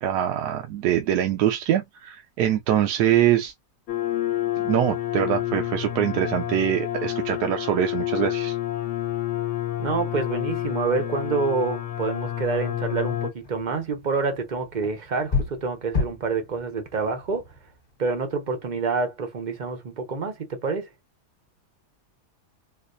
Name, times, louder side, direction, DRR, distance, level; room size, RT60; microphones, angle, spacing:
voice 1, 0.0-3.5 4.6-8.6, right 11 dB, 85° right, 1.1 m, -23 dB
sound 1, 3.9-13.3, left 13 dB, 65° left, 0.8 m, -29 dB
voice 2, 9.8-17.4 18.0-20.9, right 4 dB, 45° right, 0.6 m, -27 dB
sound 2, 13.4-18.3, left 4 dB, 35° left, 1.3 m, -33 dB
3.9 x 2.5 x 2.5 m
omnidirectional pair, 1.7 m